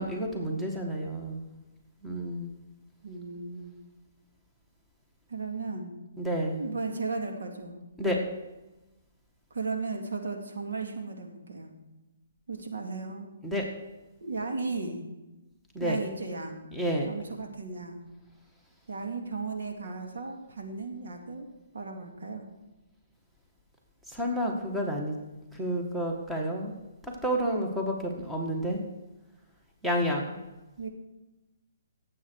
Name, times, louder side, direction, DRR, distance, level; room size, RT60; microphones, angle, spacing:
voice 1, 0.0-1.4 2.0-2.5 6.2-6.6 8.0-8.2 13.4-13.6 15.7-16.0 16.7-17.1 24.1-25.2 25.5-26.8 27.0-28.8 29.8-30.4, equal, 5° right, 0 dB, 1.7 m, -30 dB
voice 2, 3.0-3.8 5.3-6.0 6.6-7.8 9.5-11.7 12.5-13.3 14.2-15.0 15.8-16.6 17.1-18.0 18.9-21.5 21.7-22.4 30.8-30.9, right 3 dB, 75° right, 3 dB, 2.3 m, -35 dB
17.0 x 7.9 x 4.7 m, 1.0 s
hypercardioid pair, 145°, 0 cm